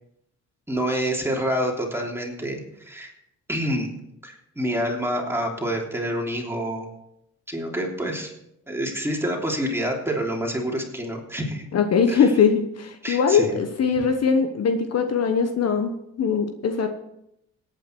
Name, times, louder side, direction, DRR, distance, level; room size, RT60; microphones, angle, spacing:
voice 1, 0.7-3.1 3.5-3.9 4.2-6.9 7.5-8.3 8.7-11.7 12.1-12.2 13.0-13.6, equal, 10° right, -1 dB, 3.3 m, -27 dB
voice 2, 11.7-16.9, left 6 dB, 55° left, 7 dB, 1.3 m, -21 dB
17.5 x 8.9 x 4.7 m, 0.80 s
cardioid pair, 90°, 30 cm